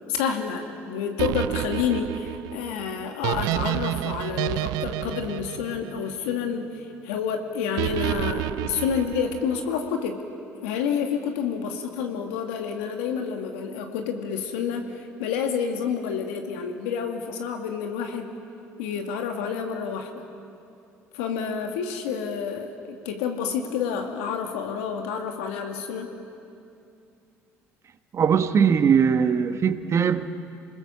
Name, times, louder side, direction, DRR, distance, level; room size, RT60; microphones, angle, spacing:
voice 1, 0.0-10.2 10.6-18.3 18.8-20.3 21.1-26.1, left 6 dB, 85° left, 4 dB, 2.3 m, -29 dB
sound 1, 1.2-6.5 7.8-9.7, right 17 dB, 75° right, 0.5 m, -30 dB
voice 2, 28.1-30.3, right 7 dB, 45° right, 10 dB, 1.3 m, -20 dB
28.0 x 20.0 x 7.3 m, 2.6 s
hypercardioid pair, 65°, 7 cm